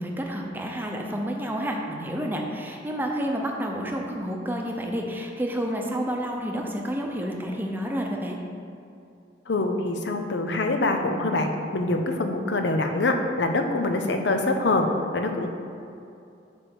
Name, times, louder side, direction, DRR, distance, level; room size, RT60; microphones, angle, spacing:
voice 1, 0.0-8.4, equal, 10° right, 1 dB, 0.7 m, -30 dB
voice 2, 9.5-14.9 15.1-15.5, left 2 dB, 80° left, 5 dB, 0.7 m, -25 dB
8.5 x 3.4 x 6.2 m, 2.6 s
head